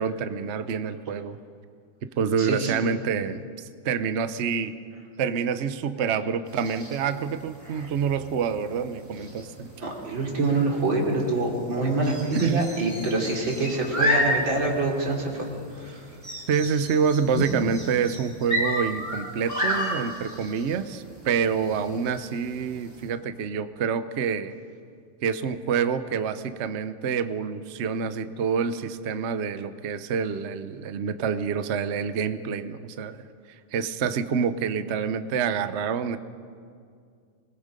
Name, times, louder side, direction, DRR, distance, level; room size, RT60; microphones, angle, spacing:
voice 1, 0.0-1.4 2.2-4.7 5.2-9.7 12.3-12.6 16.5-24.5 25.2-33.2 33.7-36.2, right 6 dB, 80° right, 11 dB, 0.6 m, -27 dB
voice 2, 2.4-2.7 7.7-7.9 9.8-15.5 15.7-16.0, right 3 dB, 65° right, -1 dB, 4.0 m, -26 dB
sound 1, 6.5-23.1, left 1 dB, 5° right, 4.5 m, -33 dB
26.0 x 20.5 x 5.2 m, 2.3 s
omnidirectional pair, 2.3 m